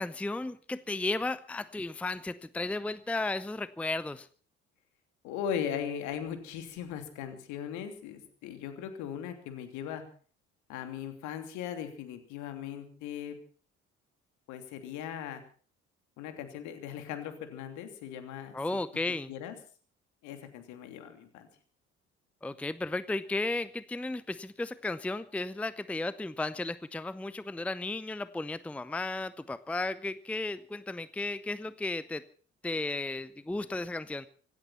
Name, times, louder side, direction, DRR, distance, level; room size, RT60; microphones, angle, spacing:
voice 1, 0.0-4.3 18.5-19.3 22.4-32.2 32.6-34.3, left 2 dB, 5° left, 17 dB, 0.7 m, -34 dB
voice 2, 5.2-10.0 10.7-13.4 14.5-15.4 16.2-18.6 19.3-19.5 20.2-21.5, left 9 dB, 60° left, 8 dB, 3.0 m, -38 dB
25.5 x 9.5 x 5.7 m, 0.43 s
figure-of-eight pair, 50°, 33 cm